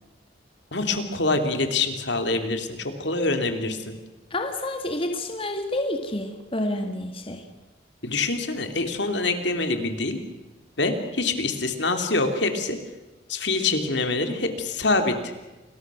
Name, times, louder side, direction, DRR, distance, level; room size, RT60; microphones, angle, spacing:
voice 1, 0.7-3.9 8.0-10.2 10.8-12.8 13.3-15.3, left 3 dB, 65° left, 6 dB, 3.0 m, -25 dB
voice 2, 4.3-7.4, left 1 dB, 30° left, 5 dB, 1.9 m, -29 dB
29.0 x 21.5 x 6.3 m, 1.1 s
head